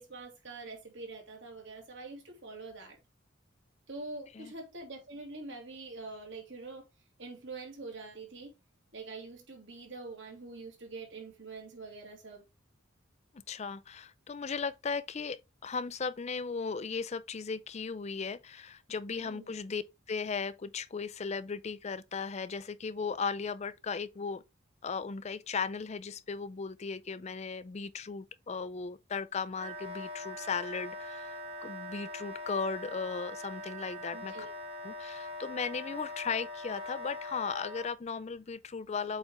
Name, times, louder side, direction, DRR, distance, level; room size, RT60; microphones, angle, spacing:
voice 1, 0.0-3.0 3.9-6.9 7.2-8.5 8.9-12.5 19.2-19.6 34.1-34.5, right 3 dB, 60° right, 2.5 m, -45 dB
voice 2, 13.5-19.8 20.1-24.4 24.8-34.3 34.8-39.2, left 5 dB, 35° left, 0.4 m, -36 dB
Wind instrument woodwind instrument, 29.6-37.9, left 1 dB, 30° right, 1.6 m, -42 dB
8.0 x 4.3 x 3.6 m
head